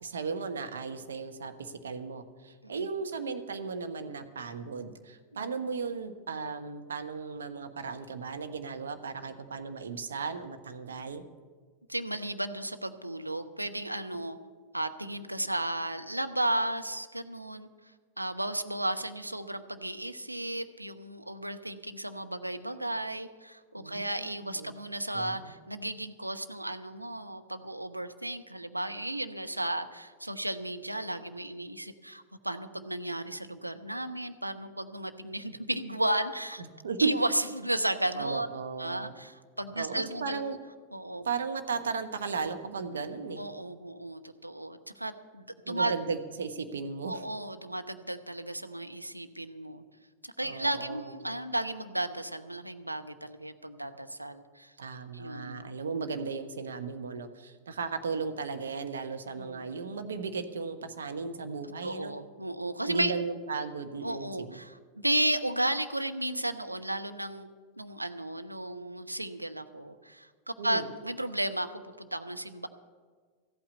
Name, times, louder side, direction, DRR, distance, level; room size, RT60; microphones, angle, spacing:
voice 1, 0.0-11.2 23.7-24.7 25.1-25.5 36.6-37.1 38.1-39.1 39.8-40.6 41.2-43.4 45.6-47.2 50.4-51.1 54.8-62.1 62.8-64.6 70.6-70.9, right 5 dB, 70° right, 7 dB, 1.1 m, -36 dB
voice 2, 11.9-14.4 14.7-17.7 18.2-36.6 37.0-38.5 38.8-40.4 40.9-41.3 43.4-45.9 47.1-49.8 50.2-54.7 55.1-55.7 59.4-59.6 61.8-63.1 64.0-67.5 67.8-72.7, right 1 dB, 85° right, 7 dB, 0.8 m, -34 dB
14.0 x 8.8 x 8.3 m, 1.5 s
figure-of-eight pair, 90°, 0 cm